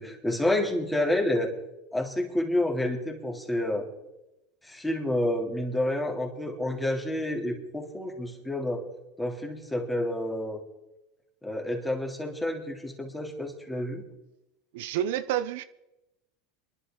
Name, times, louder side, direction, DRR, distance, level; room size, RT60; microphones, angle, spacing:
voice 1, 0.0-1.5 1.9-3.9 4.6-8.8 9.2-10.6 11.4-14.0, left 1 dB, 5° left, 3.0 m, -29 dB
voice 2, 14.7-15.6, right 11 dB, 75° right, 0.6 m, -29 dB
24.5 x 11.0 x 3.8 m
supercardioid pair, 120°, 0 cm